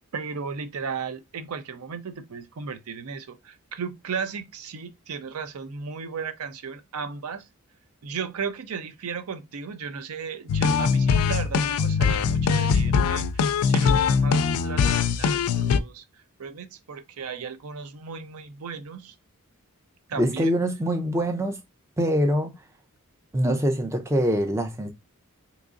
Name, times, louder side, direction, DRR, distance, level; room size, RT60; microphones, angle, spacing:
voice 1, 0.1-7.4 8.0-13.2 13.6-16.0 16.4-19.1 20.1-20.5, right 5 dB, 70° right, 0.5 m, -35 dB
sound 1, 10.5-15.8, left 5 dB, 75° left, 0.3 m, -22 dB
voice 2, 20.2-21.6 22.0-22.5 23.3-24.9, equal, 10° right, 0.4 m, -24 dB
3.7 x 2.9 x 2.5 m
head